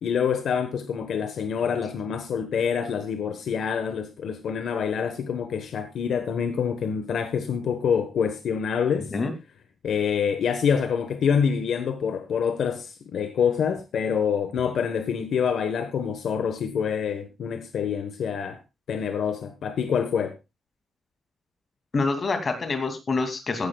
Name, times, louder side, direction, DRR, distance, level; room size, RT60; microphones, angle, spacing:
voice 1, 0.0-9.1 9.8-18.6 18.9-20.4, left 7 dB, 75° left, 1.3 m, -26 dB
voice 2, 21.9-23.7, left 3 dB, 35° left, 2.6 m, -26 dB
16.5 x 12.0 x 2.4 m
wide cardioid pair, 150°, 0 cm